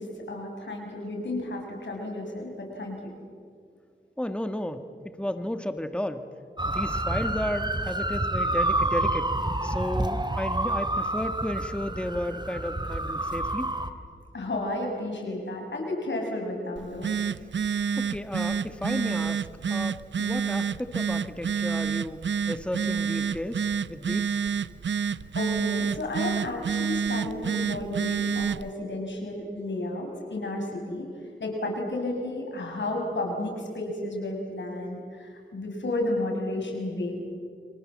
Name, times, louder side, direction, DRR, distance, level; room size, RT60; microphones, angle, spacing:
voice 1, 0.0-3.1 14.3-17.1 25.3-31.1 31.4-37.4, left 1 dB, 75° left, 1 dB, 6.6 m, -32 dB
voice 2, 4.2-6.2 6.7-9.3 9.6-13.7 18.0-24.4, left 1 dB, 5° left, 8 dB, 1.7 m, -33 dB
sound 1, 6.6-13.9, right 1 dB, 25° right, 2.5 m, -28 dB
Telephone, 16.8-28.7, right 6 dB, 80° right, 0.6 m, -29 dB
30.0 x 25.0 x 7.5 m, 2.2 s
cardioid pair, 45°, 19 cm